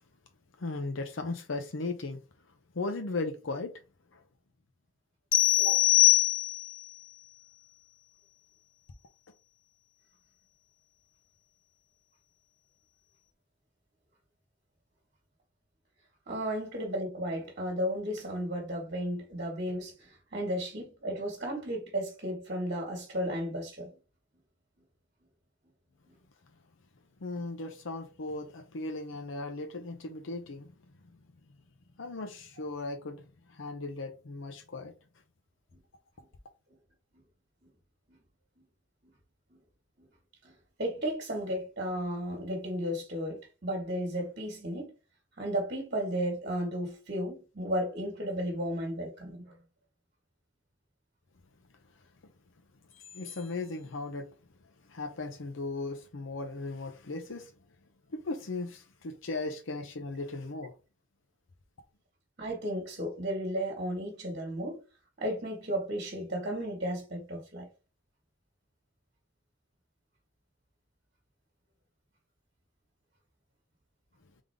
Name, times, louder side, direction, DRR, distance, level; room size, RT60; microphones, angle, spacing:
voice 1, 0.6-2.2 2.7-3.8 4.1-4.2 27.2-30.7 32.0-33.2 33.5-34.9 52.9-54.3 54.9-57.5 58.1-60.7, left 3 dB, 80° left, 0.7 m, -37 dB
sound 1, 5.3-6.9, left 18 dB, 45° left, 0.6 m, -22 dB
voice 2, 16.3-23.9 40.4-40.5 40.8-44.9 45.4-49.6 62.4-64.8 65.2-67.7, equal, 45° right, 1.4 m, -34 dB
3.7 x 3.6 x 3.4 m
head